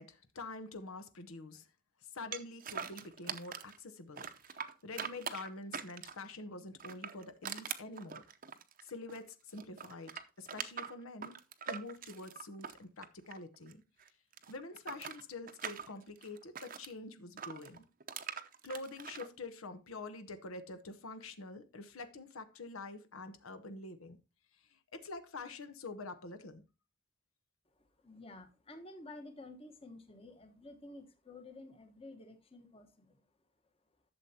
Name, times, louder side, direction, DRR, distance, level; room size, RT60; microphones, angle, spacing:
voice 1, 0.0-1.7 2.1-8.2 8.8-11.4 11.7-13.8 14.5-17.8 18.6-24.2 24.7-26.6, left 3 dB, 75° left, 0.9 m, -46 dB
sound 1, 2.3-3.8 4.2-6.3 6.8-9.3 9.5-13.7 14.0-16.9 17.4-19.3, right 7 dB, 40° right, 0.7 m, -43 dB
voice 2, 27.7-33.2, left 2 dB, 25° left, 1.2 m, -52 dB
12.0 x 7.1 x 2.8 m
head